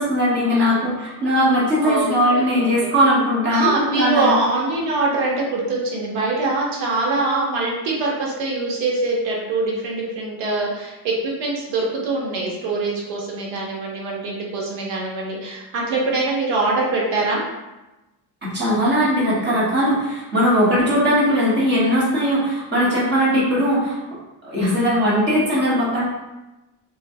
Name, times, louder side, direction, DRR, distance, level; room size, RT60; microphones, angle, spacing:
voice 1, 0.0-4.4 18.4-24.0 24.4-26.1, equal, 25° right, -8 dB, 1.1 m, -19 dB
voice 2, 0.5-0.8 1.8-2.9 3.5-17.4 20.7-20.8 24.6-24.9, right 3 dB, 90° right, -2 dB, 1.0 m, -24 dB
3.7 x 3.0 x 2.7 m, 1.0 s
cardioid pair, 170°, 45 cm